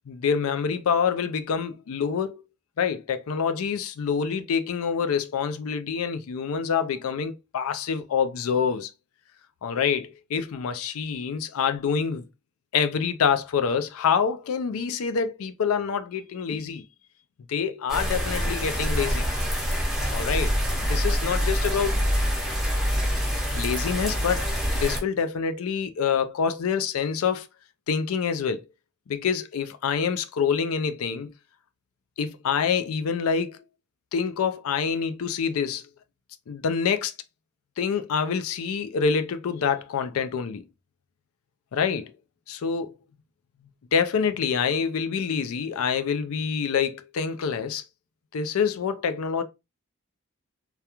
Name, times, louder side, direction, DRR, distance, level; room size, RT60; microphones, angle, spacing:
voice 1, 0.1-2.4 2.8-8.9 9.6-12.3 12.7-16.8 17.5-19.3 20.1-20.6 20.8-22.0 23.5-27.5 27.9-28.7 29.1-31.3 32.2-33.6 34.1-35.8 36.5-37.1 37.8-40.6 41.7-42.1 42.5-42.9 43.9-47.8 48.3-49.4, left 6 dB, 80° left, 0.4 m, -26 dB
sound 1, 17.9-25.0, equal, ahead, 0.6 m, -26 dB
2.3 x 2.2 x 2.8 m
head